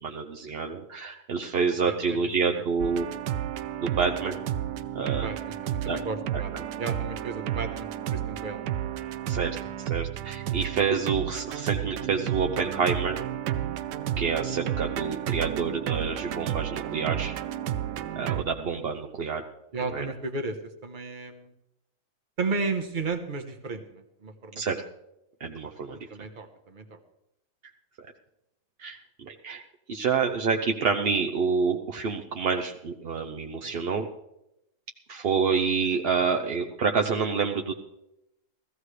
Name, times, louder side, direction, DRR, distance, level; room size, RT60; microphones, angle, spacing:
voice 1, 0.0-3.1 3.8-4.4 4.9-5.3 5.9-6.0 6.3-6.7 9.3-9.6 9.9-13.2 14.2-17.3 18.1-19.4 19.9-20.0 24.6-24.8 25.4-26.1 28.0-28.1 28.8-29.6 29.9-34.1 35.1-37.7, right 5 dB, 55° right, 3 dB, 0.7 m, -28 dB
voice 2, 1.8-2.2 2.5-2.7 5.2-6.5 6.8-8.7 17.9-18.2 19.7-20.6 20.8-21.5 22.4-24.6 26.1-27.0 33.6-33.8 36.3-36.4, right 4 dB, 35° right, 7 dB, 1.0 m, -34 dB
sound 1, 2.8-18.4, right 11 dB, 80° right, 1.2 m, -32 dB
16.0 x 15.0 x 3.3 m, 0.86 s
omnidirectional pair, 1.8 m